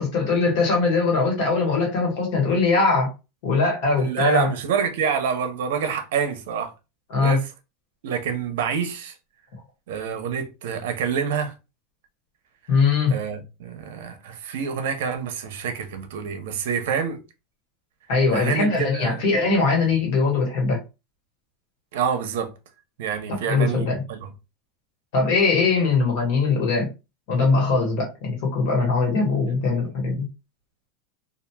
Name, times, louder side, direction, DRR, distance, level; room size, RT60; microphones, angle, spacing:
voice 1, 0.0-3.1 3.4-4.5 7.1-7.4 12.7-13.1 18.1-20.8 23.5-24.0 25.1-26.9 27.3-30.2, left 4 dB, 55° left, 1.3 m, -21 dB
voice 2, 4.0-6.7 7.2-7.5 8.0-9.1 9.9-11.5 13.1-17.2 18.3-19.2 21.9-22.5 23.0-24.3, right 7 dB, 70° right, 0.6 m, -27 dB
2.9 x 2.4 x 2.2 m
supercardioid pair, 165°, 0 cm